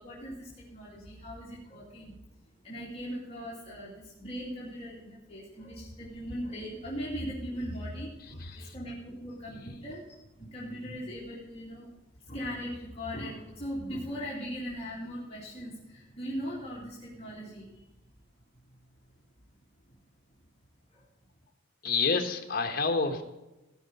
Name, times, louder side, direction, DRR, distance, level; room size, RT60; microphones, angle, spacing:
voice 1, 0.0-2.2 2.6-11.9 12.2-17.8 19.9-20.0 20.9-21.0, equal, 30° left, -6 dB, 2.5 m, -39 dB
voice 2, 8.4-8.7 9.5-9.8 21.8-23.2, left 4 dB, 45° left, 5 dB, 1.4 m, -29 dB
17.0 x 5.8 x 5.4 m, 1.0 s
head